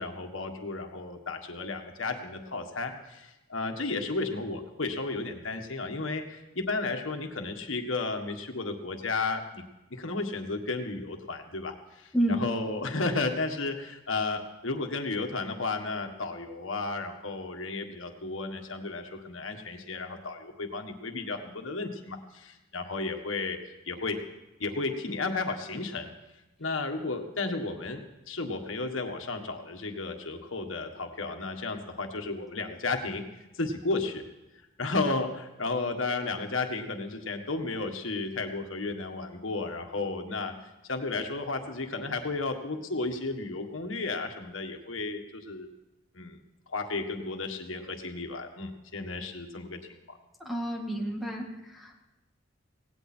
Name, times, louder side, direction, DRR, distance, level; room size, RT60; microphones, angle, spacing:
voice 1, 0.0-9.6 9.9-23.6 23.8-24.2 24.6-26.1 26.6-28.0 28.3-33.2 33.5-34.2 34.8-40.5 40.9-45.7 46.1-46.4 46.7-49.8, left 3 dB, 85° left, 4 dB, 1.7 m, -33 dB
voice 2, 50.4-52.1, right 1 dB, ahead, 0 dB, 2.1 m, -30 dB
18.0 x 17.0 x 4.5 m, 1.0 s
head